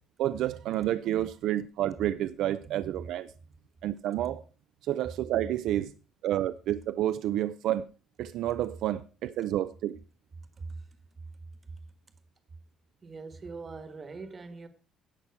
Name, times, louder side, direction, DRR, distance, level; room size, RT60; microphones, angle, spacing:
voice 1, 0.2-3.3 3.8-4.4 4.8-5.9 6.2-7.9 8.2-10.0, right 12 dB, 60° right, 0.5 m, -29 dB
voice 2, 13.0-14.7, right 4 dB, 20° right, 1.3 m, -41 dB
16.5 x 6.0 x 4.6 m
cardioid pair, 180°, 0 cm